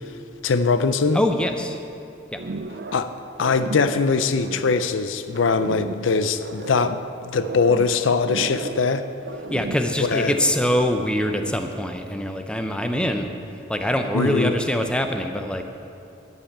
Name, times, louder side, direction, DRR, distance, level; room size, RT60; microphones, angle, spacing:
voice 1, 0.4-1.2 2.9-9.1 10.0-10.3 14.1-14.5, left 4 dB, 80° left, 11 dB, 0.5 m, -22 dB
voice 2, 1.1-1.8 2.3-2.4 9.5-13.3 13.7-15.6, left 1 dB, 5° left, 5 dB, 0.6 m, -23 dB
sound 1, 2.4-3.1 3.3-5.0 5.3-7.0 7.3-9.0 9.2-10.8 11.1-11.7, right 3 dB, 55° right, 0.5 m, -35 dB
12.0 x 5.5 x 8.6 m, 2.6 s
head